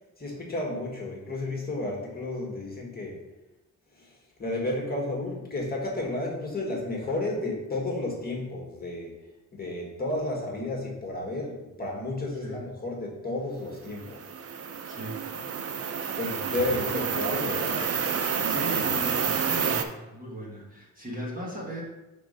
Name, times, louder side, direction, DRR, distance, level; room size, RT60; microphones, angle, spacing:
voice 1, 0.2-3.2 3.9-14.3 16.1-18.0, left 2 dB, 30° left, -2 dB, 1.5 m, -32 dB
sound 1, 13.9-19.8, right 6 dB, 50° right, 0.6 m, -29 dB
voice 2, 14.9-15.2 18.2-21.8, right 1 dB, 25° right, -3 dB, 1.4 m, -37 dB
5.8 x 3.9 x 5.3 m, 1.0 s
wide cardioid pair, 135°, 32 cm